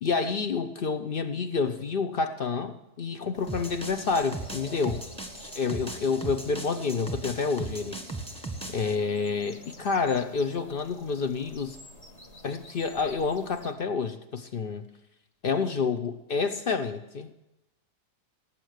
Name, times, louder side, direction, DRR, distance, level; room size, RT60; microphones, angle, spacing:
voice 1, 0.0-5.0 5.4-7.9 8.7-11.8 12.4-14.8 15.4-17.3, left 5 dB, 60° left, 9 dB, 0.5 m, -29 dB
sound 1, 3.3-13.7, left 1 dB, 25° left, 1.1 m, -49 dB
sound 2, 3.5-8.9, right 2 dB, 5° left, 1.2 m, -38 dB
18.5 x 8.8 x 6.5 m, 0.92 s
omnidirectional pair, 1.8 m